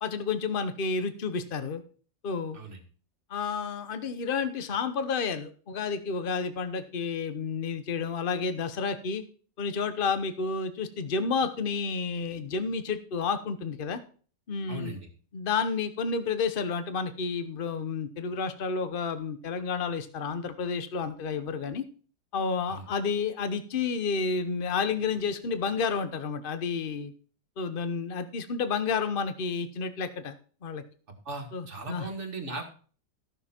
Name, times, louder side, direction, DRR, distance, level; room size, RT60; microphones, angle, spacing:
voice 1, 0.0-1.8 2.2-2.6 3.3-9.2 9.6-14.0 14.5-15.0 15.3-21.8 22.3-27.1 27.6-30.3 30.6-30.8 31.5-32.1, left 5 dB, 35° left, 10 dB, 1.0 m, -30 dB
voice 2, 14.7-15.1 22.7-22.9 31.1-32.7, right 2 dB, 40° right, 3 dB, 2.3 m, -38 dB
14.0 x 6.7 x 4.4 m, 0.41 s
omnidirectional pair, 2.0 m